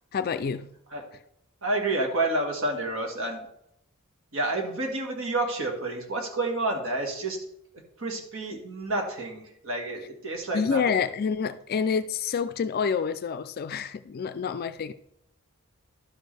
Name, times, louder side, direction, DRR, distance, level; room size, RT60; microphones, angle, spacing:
voice 1, 0.1-0.7 10.5-14.9, left 6 dB, 45° left, 0.4 m, -28 dB
voice 2, 1.6-3.4 4.3-7.4 8.0-10.8, right 2 dB, 65° right, 1.9 m, -29 dB
11.5 x 6.4 x 3.3 m
head